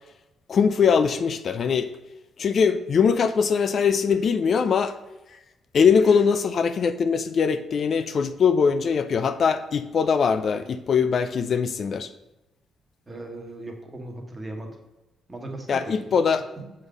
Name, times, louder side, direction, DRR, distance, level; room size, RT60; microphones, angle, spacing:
voice 1, 0.5-1.9 2.4-4.9 5.7-12.1 15.7-16.4, left 6 dB, 55° left, 10 dB, 0.4 m, -21 dB
voice 2, 13.1-14.8 15.3-15.9 16.3-16.7, right 2 dB, 25° right, 2 dB, 1.3 m, -38 dB
6.2 x 3.8 x 5.1 m, 0.99 s
cardioid pair, 90°, 0 cm